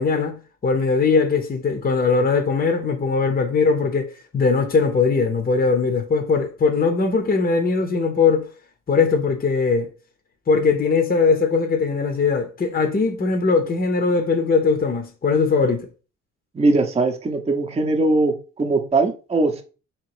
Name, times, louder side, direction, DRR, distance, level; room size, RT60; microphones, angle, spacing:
voice 1, 0.0-8.5 8.9-9.9 10.5-15.9, left 4 dB, 30° left, 0.7 m, -20 dB
voice 2, 16.5-19.6, right 2 dB, 20° right, 0.7 m, -20 dB
3.6 x 3.0 x 4.7 m
cardioid pair, 90°, 30 cm